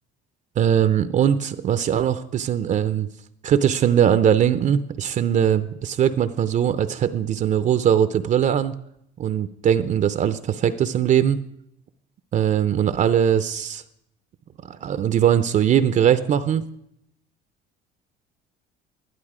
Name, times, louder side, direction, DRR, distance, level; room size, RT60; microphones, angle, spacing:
voice 1, 0.6-3.1 3.4-8.8 9.2-11.4 12.3-13.8 14.7-16.6, right 9 dB, 40° right, 12 dB, 0.5 m, -20 dB
11.5 x 11.0 x 4.9 m, 0.76 s
cardioid pair, 115°, 19 cm